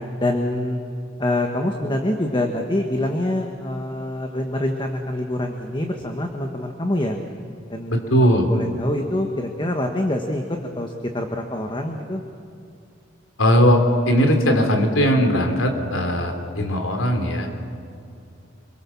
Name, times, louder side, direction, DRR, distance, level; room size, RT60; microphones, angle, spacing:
voice 1, 0.2-0.8 1.2-7.2 7.7-12.2, left 1 dB, 25° left, 3 dB, 1.5 m, -25 dB
voice 2, 7.9-8.5 13.4-17.5, equal, 90° left, 4 dB, 3.4 m, -19 dB
27.0 x 23.0 x 7.2 m, 2.5 s
head